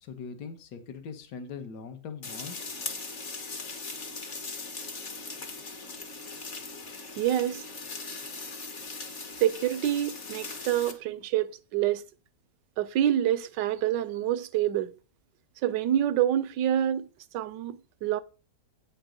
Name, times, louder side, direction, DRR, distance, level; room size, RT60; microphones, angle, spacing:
voice 1, 0.0-2.6 2.9-3.0, left 5 dB, 65° left, 1.7 m, -41 dB
sound 1, 2.2-10.9, left 3 dB, 45° left, 1.3 m, -39 dB
voice 2, 7.2-7.6 9.4-12.0 12.8-14.9 15.6-17.1 17.3-18.2, right 11 dB, 75° right, 1.2 m, -27 dB
8.8 x 5.3 x 5.1 m
omnidirectional pair, 2.0 m